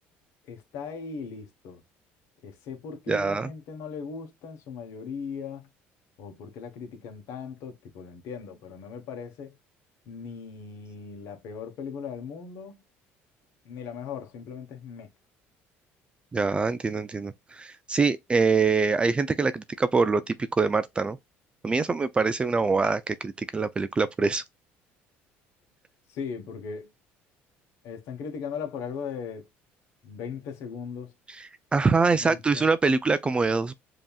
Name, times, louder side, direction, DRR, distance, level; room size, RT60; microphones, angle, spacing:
voice 1, 0.4-1.8 2.4-5.7 6.2-9.6 10.1-12.8 13.6-15.1 26.1-26.9 27.8-29.5 30.0-31.1 31.9-32.7, left 6 dB, 70° left, 1.2 m, -38 dB
voice 2, 3.1-3.5 16.3-21.2 21.6-24.4 31.4-33.7, right 4 dB, 20° right, 0.4 m, -24 dB
5.2 x 2.8 x 2.3 m
supercardioid pair, 95°, 5 cm